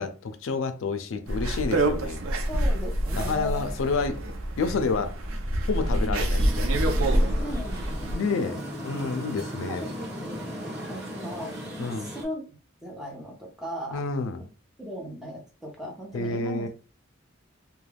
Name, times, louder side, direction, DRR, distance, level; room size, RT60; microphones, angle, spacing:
voice 1, 0.0-2.2 3.1-4.2 4.6-5.2 5.7-7.2 8.0-9.8 11.8-12.1 13.9-14.4 16.1-16.7, left 4 dB, 70° left, 0.4 m, -29 dB
sound 1, 1.3-8.1, right 1 dB, 85° right, 0.5 m, -26 dB
voice 2, 2.5-3.8 4.3-4.4 5.9-6.2 7.0-9.3 9.5-11.5 11.8-12.4 12.8-14.0 14.8-16.7, equal, ahead, 0.6 m, -38 dB
sound 2, 6.4-12.2, equal, 50° right, 0.9 m, -37 dB
2.3 x 2.2 x 3.3 m
head